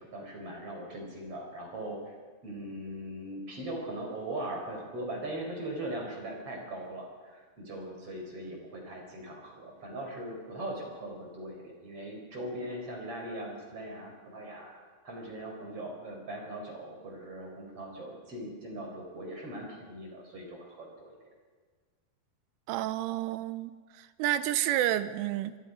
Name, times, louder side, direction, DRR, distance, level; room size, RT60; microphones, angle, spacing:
voice 1, 0.0-2.1 2.4-14.7 15.0-21.1, right 1 dB, 30° right, 1 dB, 5.2 m, -40 dB
voice 2, 22.7-23.7 24.0-25.6, right 13 dB, 85° right, 12 dB, 3.3 m, -30 dB
25.5 x 22.5 x 5.4 m, 1.5 s
omnidirectional pair, 5.7 m